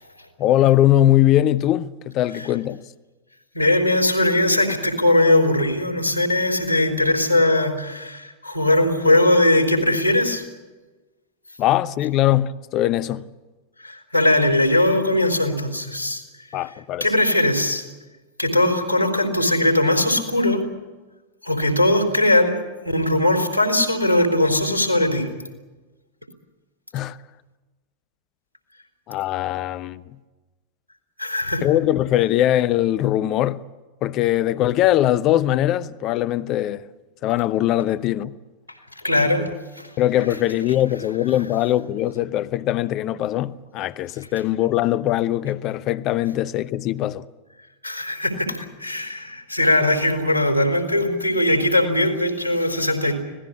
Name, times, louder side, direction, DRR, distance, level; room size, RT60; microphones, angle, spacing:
voice 1, 0.4-2.8 11.6-13.2 16.5-17.0 26.9-27.2 29.1-30.0 31.6-33.6 34.0-36.8 37.2-38.3 40.0-47.2, left 13 dB, 35° left, 0.8 m, -21 dB
voice 2, 3.5-10.4 13.8-16.2 16.5-16.6 17.0-17.8 18.4-20.6 21.4-22.5 22.8-25.3 31.2-31.7 39.0-39.5 39.8-39.9 47.8-53.1, left 1 dB, 90° right, 4.0 m, -20 dB
25.5 x 18.0 x 8.5 m
figure-of-eight pair, 90°, 0 cm